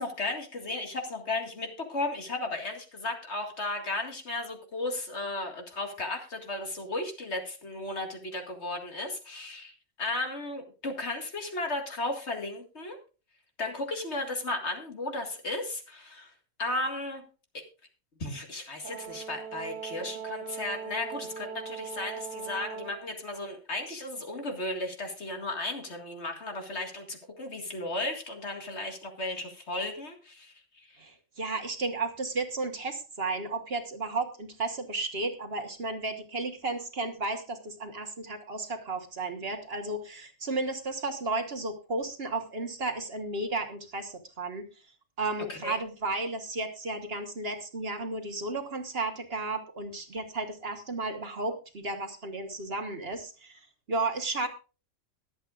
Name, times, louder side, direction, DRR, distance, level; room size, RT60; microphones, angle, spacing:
voice 1, 0.0-13.0 13.6-16.3 16.6-17.2 18.2-31.0 45.5-45.8, left 2 dB, 60° left, 3 dB, 2.3 m, -35 dB
Brass instrument, 18.8-23.1, right 7 dB, 75° right, 1.9 m, -40 dB
voice 2, 31.0-44.7 45.2-53.6 53.9-54.5, right 3 dB, 50° right, 6 dB, 1.7 m, -33 dB
22.0 x 8.2 x 2.5 m, 0.34 s
omnidirectional pair, 1.3 m